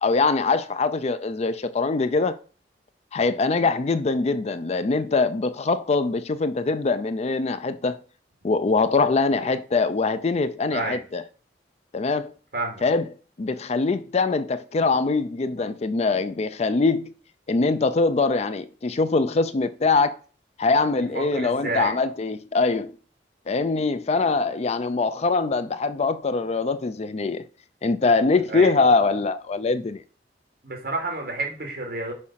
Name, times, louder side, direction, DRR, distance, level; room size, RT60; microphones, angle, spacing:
voice 1, 0.0-2.4 3.1-8.0 8.4-11.2 11.9-12.3 12.8-13.1 13.4-17.1 17.5-20.2 20.6-22.9 23.5-27.4 27.8-30.0, left 3 dB, 35° left, 0.4 m, -23 dB
voice 2, 12.5-12.8 21.1-21.9 28.5-28.7 30.6-32.1, right 2 dB, 60° right, 2.6 m, -30 dB
6.3 x 5.0 x 5.7 m
head